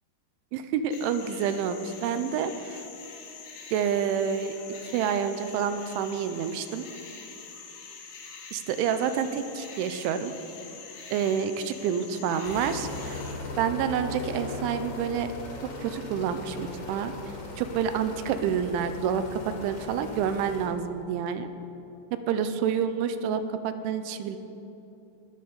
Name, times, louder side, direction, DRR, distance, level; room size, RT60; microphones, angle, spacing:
voice 1, 0.5-2.9 3.7-4.5 4.9-6.9 8.5-10.3 11.1-13.2 13.6-15.3 15.8-17.1 17.6-21.5 22.3-24.4, right 7 dB, 85° right, 10 dB, 3.1 m, -28 dB
sound 1, 0.9-13.3, left 5 dB, 90° left, 4.4 m, -45 dB
sound 2, 12.4-20.7, left 2 dB, 70° left, 4.5 m, -38 dB
20.0 x 13.0 x 4.1 m, 3.0 s
omnidirectional pair, 5.6 m